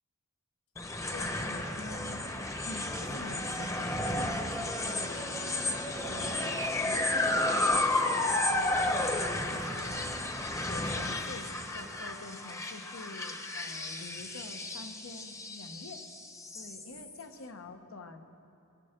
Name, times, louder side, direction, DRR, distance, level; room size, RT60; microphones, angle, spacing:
sound 1, 0.8-17.2, left 2 dB, 15° left, 0.8 m, -32 dB
voice 1, 1.1-2.3 2.6-5.3 6.1-10.1 10.7-16.0 16.5-18.3, left 3 dB, 85° left, 6 dB, 1.1 m, -46 dB
21.5 x 10.0 x 5.2 m, 2.8 s
head